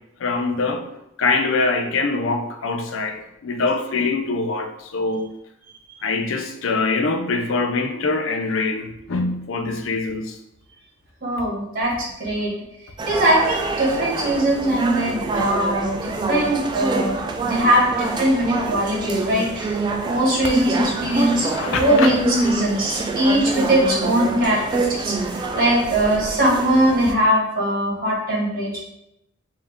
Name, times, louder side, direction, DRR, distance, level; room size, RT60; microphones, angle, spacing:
voice 1, 0.2-0.9 1.2-5.3 6.0-10.4 21.0-22.1, left 3 dB, 70° left, 0.5 m, -24 dB
voice 2, 11.2-12.5 13.1-17.1 17.4-28.8, right 1 dB, 50° right, 1.5 m, -21 dB
sound 1, 13.0-27.1, right 3 dB, 25° right, 0.3 m, -26 dB
3.5 x 2.7 x 3.6 m
head